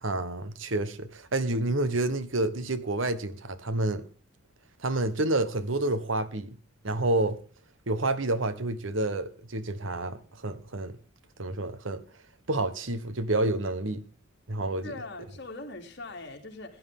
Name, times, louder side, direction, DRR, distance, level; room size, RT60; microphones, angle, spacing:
voice 1, 0.0-4.0 4.8-6.6 6.8-7.4 7.9-11.0 11.4-12.0 12.5-14.0 14.5-14.9, right 2 dB, 75° right, 1.2 m, -29 dB
voice 2, 14.8-16.8, left 2 dB, 60° left, 2.8 m, -41 dB
17.0 x 10.5 x 3.7 m
head